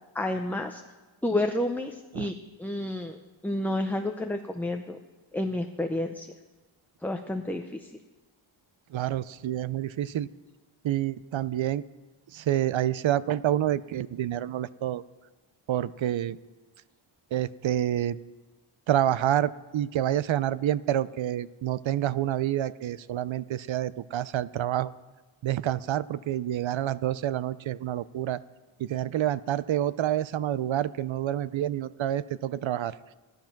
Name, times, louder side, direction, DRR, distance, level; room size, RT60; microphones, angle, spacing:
voice 1, 0.1-0.8 1.2-3.2 3.4-5.0 5.3-6.3 7.0-7.8, left 1 dB, 5° left, 4 dB, 0.6 m, -30 dB
voice 2, 8.9-10.3 10.8-11.8 12.3-15.0 15.7-16.4 17.3-18.2 18.9-24.9 25.4-28.4 28.8-32.9, right 12 dB, 70° right, 17 dB, 0.6 m, -28 dB
14.5 x 11.5 x 5.9 m, 1.2 s
wide cardioid pair, 105°, 49 cm